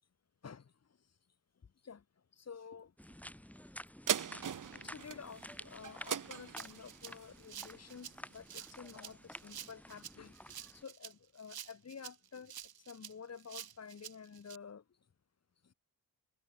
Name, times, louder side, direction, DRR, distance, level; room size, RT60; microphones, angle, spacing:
voice 1, 2.4-2.9 4.8-10.3 10.7-12.5 12.9-14.8, left 6 dB, 45° left, 1.8 m, -50 dB
sound 1, 3.0-10.8, equal, 5° left, 6.4 m, -52 dB
sound 2, 4.1-8.8 9.3-9.4, right 8 dB, 60° right, 1.5 m, -40 dB
Rattle (instrument), 6.6-14.6, right 10 dB, 80° right, 2.9 m, -50 dB
cardioid pair, 85°, 36 cm